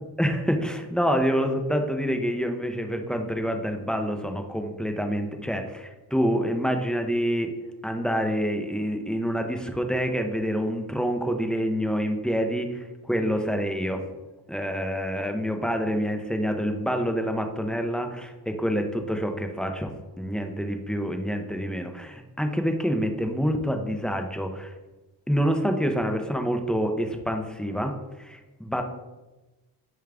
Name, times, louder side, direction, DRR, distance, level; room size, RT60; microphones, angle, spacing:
voice 1, 0.2-7.5 7.8-12.7 13.1-14.0 14.5-19.9 20.2-24.7 25.3-27.9 28.2-28.8, equal, ahead, 5 dB, 0.4 m, -27 dB
4.7 x 2.4 x 3.3 m, 1.1 s
cardioid pair, 65°, 42 cm